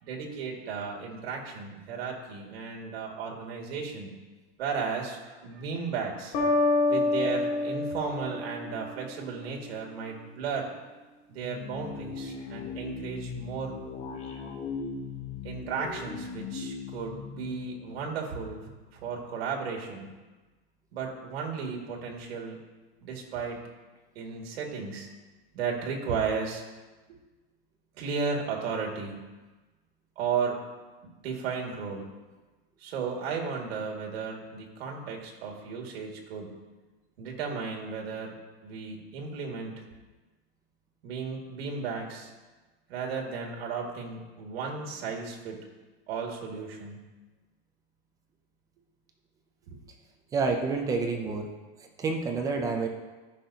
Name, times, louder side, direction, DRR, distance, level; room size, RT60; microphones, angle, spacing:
voice 1, 0.0-4.1 4.6-6.4 6.9-10.8 11.3-13.7 15.4-20.1 20.9-22.6 23.0-23.6 24.2-25.1 25.5-26.6 27.1-27.2 28.0-29.2 30.2-30.6 31.0-32.1 32.8-36.6 37.2-38.4 38.6-39.9 41.0-42.3 42.9-45.6 46.1-47.0 49.7-49.8, right 5 dB, 80° right, 0 dB, 2.1 m, -34 dB
sound 1, 6.3-9.2, left 2 dB, 45° left, 1.9 m, -27 dB
sound 2, 11.4-18.6, left 5 dB, 20° left, 0.8 m, -39 dB
voice 2, 50.3-51.5 52.0-52.9, right 4 dB, 10° right, 3 dB, 0.4 m, -28 dB
14.0 x 5.9 x 2.8 m, 1.2 s
supercardioid pair, 170°, 30 cm